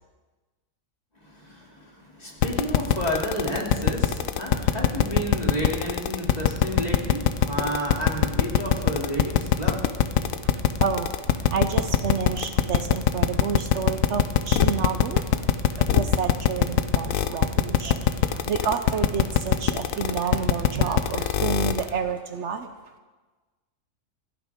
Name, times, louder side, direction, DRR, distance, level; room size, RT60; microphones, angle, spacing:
voice 1, 1.2-9.9, equal, 30° left, -2 dB, 2.8 m, -31 dB
sound 1, 2.4-21.9, left 10 dB, 80° left, 1.1 m, -21 dB
voice 2, 10.8-15.2 15.7-22.7, right 6 dB, 65° right, 8 dB, 1.0 m, -30 dB
26.5 x 8.9 x 3.6 m, 1.3 s
omnidirectional pair, 1.4 m